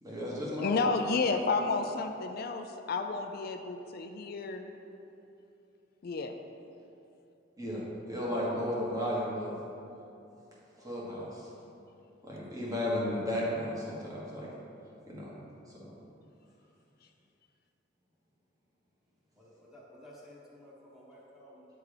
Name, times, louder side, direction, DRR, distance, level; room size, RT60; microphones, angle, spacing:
voice 1, 0.0-0.9 7.6-7.8 8.1-9.5 10.8-11.5 12.2-14.5 15.1-15.3 15.7-15.9, equal, 20° right, -6 dB, 1.5 m, -34 dB
voice 2, 0.5-4.7 6.0-6.3, left 4 dB, 55° left, 6 dB, 0.4 m, -31 dB
voice 3, 19.3-21.7, equal, ahead, -7 dB, 1.3 m, -54 dB
8.5 x 3.5 x 4.9 m, 2.7 s
head